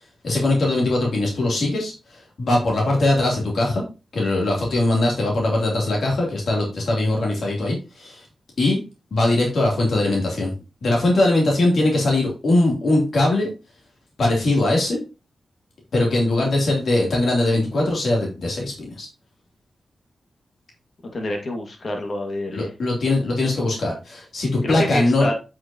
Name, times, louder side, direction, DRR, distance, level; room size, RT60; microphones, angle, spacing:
voice 1, 0.2-3.8 4.1-8.2 8.6-8.8 9.1-10.5 10.8-13.5 14.2-15.0 15.9-19.1 22.5-25.3, left 2 dB, 70° left, -1 dB, 2.9 m, -21 dB
voice 2, 21.1-22.7 24.6-25.3, left 1 dB, 50° left, 2 dB, 1.9 m, -27 dB
8.2 x 6.0 x 2.9 m, 0.30 s
wide cardioid pair, 90°, 0 cm